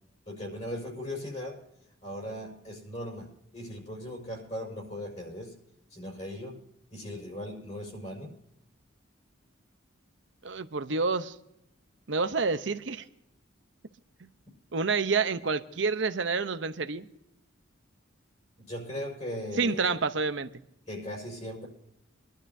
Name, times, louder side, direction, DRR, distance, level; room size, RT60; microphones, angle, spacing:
voice 1, 0.3-1.6 2.0-5.6 5.9-6.6 6.9-8.3 18.7-20.0 20.9-21.7, left 1 dB, 35° left, 5.3 m, -38 dB
voice 2, 10.4-11.4 12.1-13.1 14.7-17.1 19.6-20.5, right 4 dB, 60° right, 0.8 m, -28 dB
24.0 x 12.0 x 2.7 m
head